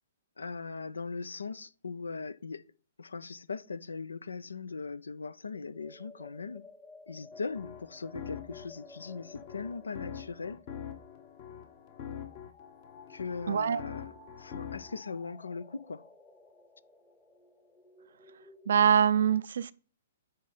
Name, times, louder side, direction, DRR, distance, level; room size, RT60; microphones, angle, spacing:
voice 1, 0.4-2.6 3.0-6.6 7.1-10.6 13.1-14.1 14.4-16.0, left 4 dB, 80° left, 0.4 m, -39 dB
sound 1, 5.5-18.7, left 3 dB, 15° left, 1.0 m, -55 dB
sound 2, 7.3-15.0, left 8 dB, 45° left, 1.2 m, -45 dB
voice 2, 13.5-13.8 18.7-19.7, right 8 dB, 65° right, 0.4 m, -24 dB
9.3 x 3.8 x 4.1 m
figure-of-eight pair, 120°, 0 cm